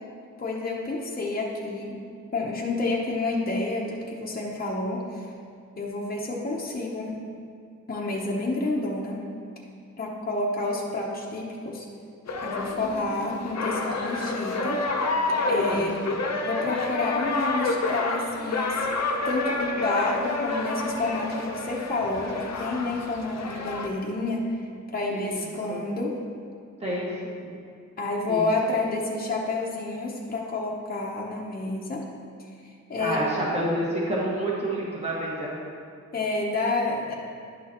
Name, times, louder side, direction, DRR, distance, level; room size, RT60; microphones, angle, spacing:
voice 1, 0.4-2.0 2.3-5.3 5.8-7.2 7.9-9.2 10.0-11.9 12.4-14.8 15.5-16.0 16.4-18.9 19.2-26.2 28.0-32.0 32.9-33.2 36.1-37.1, left 2 dB, 30° left, -3 dB, 0.8 m, -29 dB
sound 1, 12.3-23.9, left 3 dB, 60° left, 0.7 m, -29 dB
voice 2, 26.8-27.5 28.3-28.4 32.9-35.5, right 1 dB, 20° right, -6 dB, 1.7 m, -29 dB
11.0 x 6.2 x 3.0 m, 2.3 s
wide cardioid pair, 140°, 30 cm